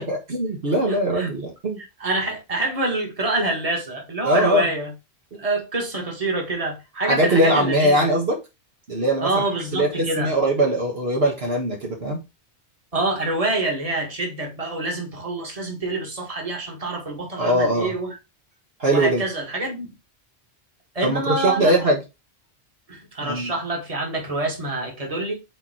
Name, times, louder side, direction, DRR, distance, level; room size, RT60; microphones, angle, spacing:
voice 1, 0.0-1.8 4.2-4.7 7.1-8.4 8.9-9.4 9.7-12.2 17.4-17.9 18.8-19.2 21.0-22.0 23.2-23.5, right 1 dB, 65° right, 1.7 m, -21 dB
voice 2, 0.9-1.3 2.0-4.9 5.4-8.0 9.2-10.3 12.9-18.2 18.9-19.9 21.0-21.8 22.9-25.3, right 2 dB, 30° right, 1.9 m, -26 dB
5.7 x 4.3 x 4.3 m
omnidirectional pair, 1.1 m